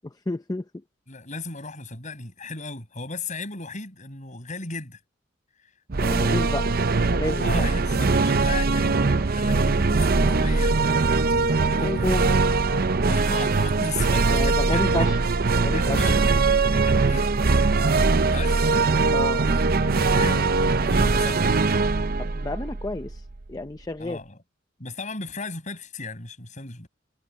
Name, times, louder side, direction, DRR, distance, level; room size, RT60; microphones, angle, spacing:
voice 1, 0.3-0.8 6.0-6.7 7.1-7.6 11.8-12.5 14.3-15.2 15.5-16.1 19.1-19.4 22.2-24.2, left 2 dB, 20° left, 0.6 m, -30 dB
voice 2, 1.1-5.0 7.4-12.3 13.1-15.1 15.7-16.2 16.8-17.7 18.3-18.7 19.5-20.5 20.8-21.4 24.0-24.4 24.8-26.9, left 3 dB, 40° left, 7.7 m, -36 dB
sound 1, 5.9-23.4, right 3 dB, 50° right, 0.7 m, -21 dB
head